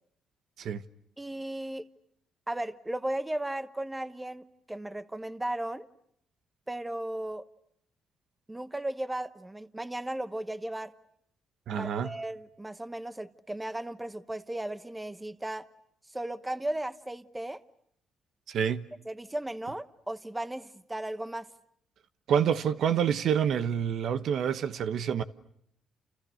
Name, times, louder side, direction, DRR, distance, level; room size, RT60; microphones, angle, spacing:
voice 1, 1.2-1.9 2.5-5.9 6.7-7.4 8.5-10.9 11.8-15.7 16.1-17.6 18.6-18.7 19.0-21.5, right 1 dB, 10° right, 1.1 m, -36 dB
voice 2, 11.7-12.1 18.5-18.8 22.3-25.2, right 8 dB, 70° right, 1.2 m, -27 dB
29.5 x 29.5 x 6.5 m
cardioid pair, 90°, 0 cm